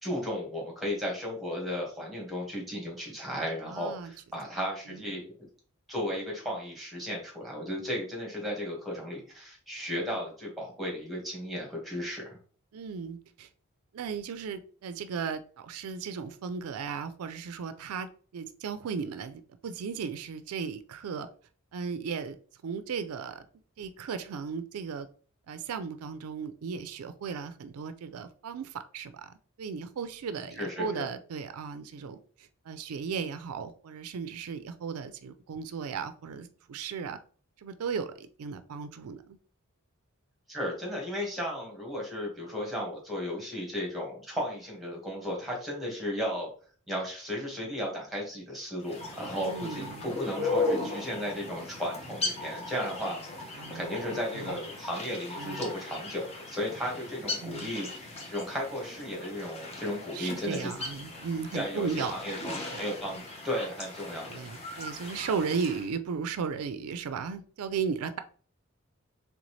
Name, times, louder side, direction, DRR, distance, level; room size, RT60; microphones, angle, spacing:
voice 1, 0.0-5.3 5.9-12.4 30.6-31.1 40.5-46.5 46.9-60.7 61.5-63.2 63.4-64.4, equal, ahead, -2 dB, 1.5 m, -35 dB
voice 2, 3.7-4.1 4.9-5.0 12.7-13.5 13.9-21.3 21.7-22.4 22.6-23.5 23.8-25.1 25.5-37.2 37.6-39.4 49.4-50.1 50.4-50.5 53.6-54.0 54.3-54.6 55.4-55.7 57.4-57.7 60.1-62.9 63.1-63.2 64.3-68.2, right 6 dB, 80° right, 11 dB, 0.4 m, -36 dB
sound 1, 48.8-65.9, left 3 dB, 30° left, 0.9 m, -37 dB
3.9 x 3.4 x 3.1 m, 0.43 s
head